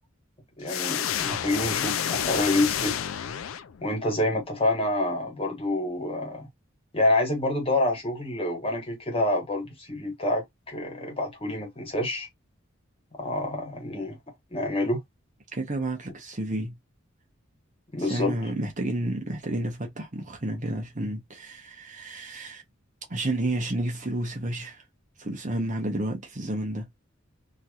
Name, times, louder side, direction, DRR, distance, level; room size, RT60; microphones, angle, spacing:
voice 1, 0.6-2.9 3.8-6.5 6.9-12.3 13.2-14.2 14.5-15.0 17.9-18.3, left 2 dB, 30° left, 1.4 m, -27 dB
sound 1, 0.7-4.0, left 9 dB, 80° left, 0.4 m, -29 dB
voice 2, 15.5-16.7 18.1-22.6 23.1-24.8 25.2-26.9, right 1 dB, 40° right, 1.0 m, -31 dB
3.0 x 2.9 x 2.4 m
head